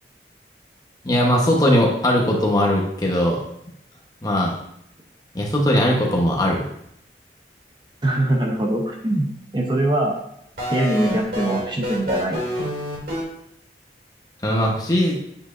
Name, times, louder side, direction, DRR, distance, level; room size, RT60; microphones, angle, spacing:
voice 1, 1.0-3.4 4.2-4.5 5.3-6.7 14.4-15.2, equal, 20° left, -1 dB, 1.1 m, -19 dB
voice 2, 8.0-10.2 10.7-12.4, right 1 dB, 25° right, 1 dB, 0.8 m, -22 dB
sound 1, 10.6-13.2, left 1 dB, 55° right, 2.8 m, -27 dB
8.8 x 5.3 x 2.6 m, 0.74 s
head